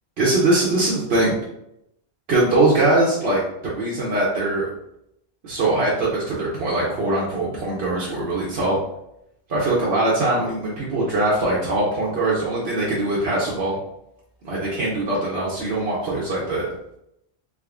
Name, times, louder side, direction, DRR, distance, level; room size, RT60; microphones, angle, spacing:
voice 1, 0.2-1.3 2.3-4.7 5.4-8.8 9.5-13.8 14.4-16.7, right 2 dB, 80° right, -6 dB, 1.0 m, -22 dB
3.6 x 3.5 x 2.4 m, 0.80 s
omnidirectional pair, 1.0 m